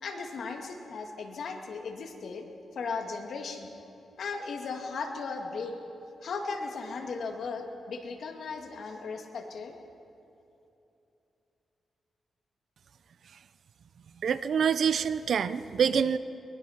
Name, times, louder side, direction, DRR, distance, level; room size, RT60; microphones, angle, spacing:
voice 1, 0.0-2.5 2.8-3.7 4.2-5.7 6.2-9.8, left 4 dB, 65° left, 3 dB, 2.1 m, -36 dB
voice 2, 14.2-16.2, right 7 dB, 65° right, 14 dB, 0.6 m, -26 dB
22.0 x 20.5 x 5.8 m, 2.8 s
wide cardioid pair, 140°, 0 cm